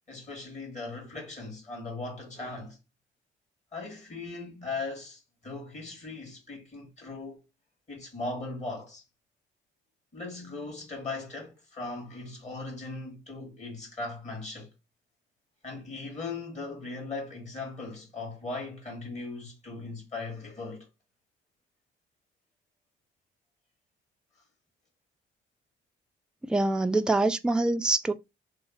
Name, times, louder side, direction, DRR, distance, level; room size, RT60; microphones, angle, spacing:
voice 1, 0.1-2.8 3.7-7.4 7.9-9.0 10.1-14.7 15.6-20.8, left 3 dB, 35° left, 1.7 m, -38 dB
voice 2, 26.4-28.1, right 2 dB, 5° right, 0.3 m, -25 dB
3.1 x 2.0 x 3.7 m
cardioid pair, 90°, 20 cm